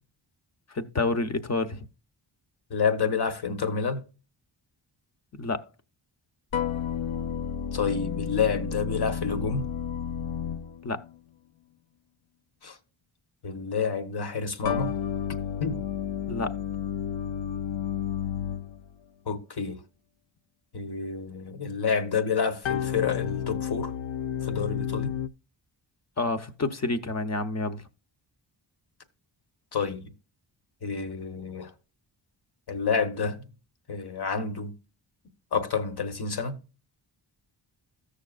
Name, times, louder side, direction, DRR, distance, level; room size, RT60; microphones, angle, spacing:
voice 1, 0.7-1.8 5.3-5.7 10.8-11.0 16.3-16.6 26.2-27.8, left 3 dB, 35° left, 0.9 m, -29 dB
voice 2, 2.7-4.0 7.7-9.7 12.6-12.8 13.4-14.9 15.6-15.8 19.3-19.8 20.7-23.9 24.4-25.1 29.7-30.0 30.8-31.7 32.7-33.4 33.9-34.7 35.5-36.6, left 5 dB, 55° left, 1.2 m, -29 dB
sound 1, 6.5-11.2 14.6-19.0 22.6-25.3, left 8 dB, 80° left, 0.6 m, -31 dB
15.0 x 6.6 x 2.4 m
wide cardioid pair, 90°, 46 cm